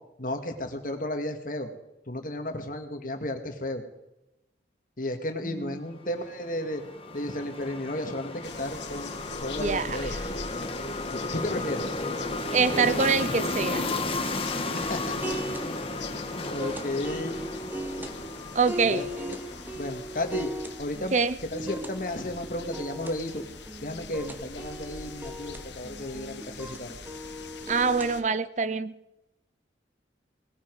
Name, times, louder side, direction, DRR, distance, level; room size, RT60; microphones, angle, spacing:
voice 1, 0.2-1.7 2.1-3.8 5.0-6.8 7.1-10.2 11.1-12.0 14.7-15.3 15.9-16.2 16.5-17.5 18.8-19.4 19.7-20.5 20.8-21.2 21.4-23.4 23.8-27.0, left 1 dB, 45° left, 6 dB, 2.0 m, -33 dB
sound 1, 6.1-20.4, left 2 dB, 30° left, 1.4 m, -34 dB
sound 2, 8.4-28.2, left 5 dB, 75° left, 1.5 m, -44 dB
voice 2, 9.6-10.0 12.5-13.8 18.5-19.0 21.1-21.3 27.7-28.9, right 5 dB, 40° right, 15 dB, 0.5 m, -24 dB
sound 3, 14.6-28.2, right 1 dB, 10° right, 0.9 m, -39 dB
20.0 x 14.0 x 4.8 m, 0.91 s
head